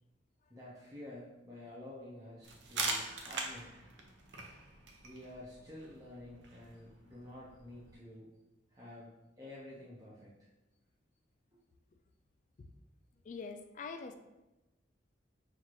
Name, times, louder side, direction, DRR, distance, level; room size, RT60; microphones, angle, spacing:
voice 1, 0.5-3.8 5.0-8.3 8.7-9.1 9.4-10.5 11.5-11.6, left 1 dB, 20° right, -7 dB, 0.6 m, -50 dB
sound 1, 2.4-8.0, right 3 dB, 75° right, 0.6 m, -42 dB
voice 2, 13.2-14.2, left 4 dB, 40° left, 7 dB, 0.3 m, -44 dB
5.8 x 2.5 x 3.1 m, 1.0 s
head